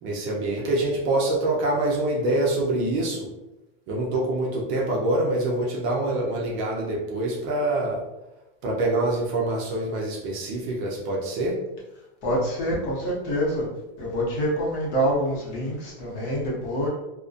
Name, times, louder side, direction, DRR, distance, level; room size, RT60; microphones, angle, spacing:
voice 1, 0.0-3.3 3.9-8.0 8.6-11.6, right 2 dB, 40° right, -3 dB, 0.6 m, -25 dB
voice 2, 12.2-13.7 14.0-16.9, equal, 35° left, -4 dB, 0.8 m, -26 dB
2.5 x 2.1 x 2.4 m, 0.96 s
supercardioid pair, 150°, 30 cm